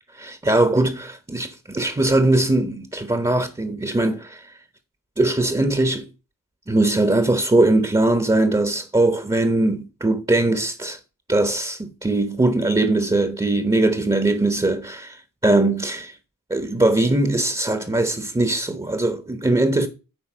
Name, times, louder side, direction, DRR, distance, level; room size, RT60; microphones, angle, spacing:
voice 1, 0.1-4.5 5.2-6.0 6.7-11.0 11.3-16.1 16.5-19.9, right 2 dB, 15° right, 1.0 m, -20 dB
9.8 x 4.1 x 6.2 m
wide cardioid pair, 85°, 33 cm